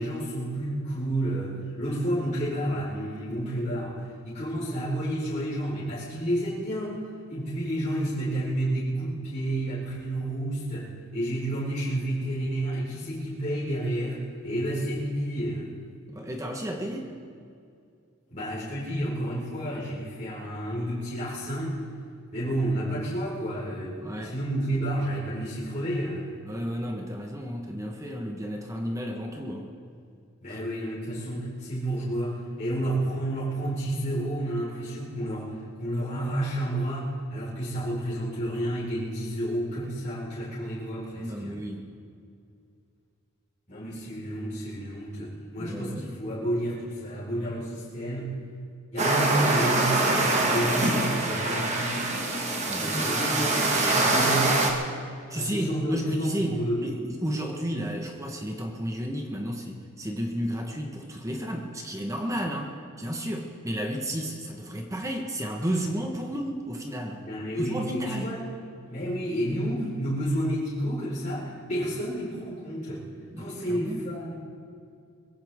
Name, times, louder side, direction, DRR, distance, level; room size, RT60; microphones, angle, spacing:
voice 1, 0.0-7.0 7.3-15.7 18.3-21.8 22.3-24.0 24.2-26.3 30.4-35.5 35.8-41.6 43.7-48.3 48.9-52.0 52.8-54.6 55.3-56.8 67.2-68.4 68.9-73.0 73.4-74.3, right 1 dB, 35° left, -9 dB, 4.8 m, -30 dB
voice 2, 16.1-17.1 24.0-24.4 26.4-29.7 30.5-30.6 41.2-41.9 45.6-46.2 52.6-53.5 55.3-67.2 67.6-68.3 73.3-74.0, equal, 15° right, 2 dB, 1.3 m, -32 dB
sound 1, 49.0-54.7, right 2 dB, 30° right, 1.6 m, -24 dB
22.5 x 16.0 x 3.7 m, 2.4 s
head